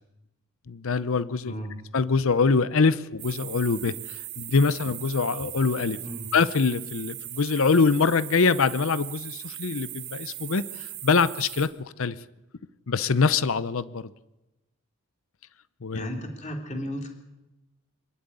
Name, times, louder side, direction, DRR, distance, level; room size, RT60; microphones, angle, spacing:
voice 1, 0.7-1.5 1.9-6.0 6.3-12.2 12.9-14.1 15.8-16.1, left 4 dB, 65° left, 16 dB, 0.7 m, -24 dB
voice 2, 1.4-1.7 6.0-6.3 15.9-17.1, equal, 35° left, 2 dB, 3.1 m, -34 dB
sound 1, 3.2-11.7, right 14 dB, 80° right, 3.9 m, -39 dB
25.0 x 11.5 x 9.8 m, 1.0 s
head